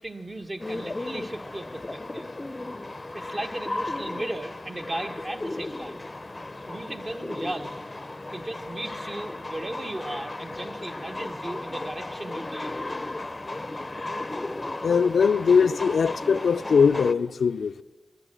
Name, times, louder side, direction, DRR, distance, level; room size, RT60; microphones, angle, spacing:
voice 1, 0.0-2.3 3.1-6.1 6.7-7.8 8.3-12.8, right 1 dB, 35° right, 1.2 m, -36 dB
sound 1, 0.6-17.1, left 2 dB, 30° left, 0.6 m, -35 dB
voice 2, 14.8-17.8, left 6 dB, 85° left, 0.4 m, -21 dB
16.0 x 11.0 x 7.7 m
cardioid pair, 60°, 0 cm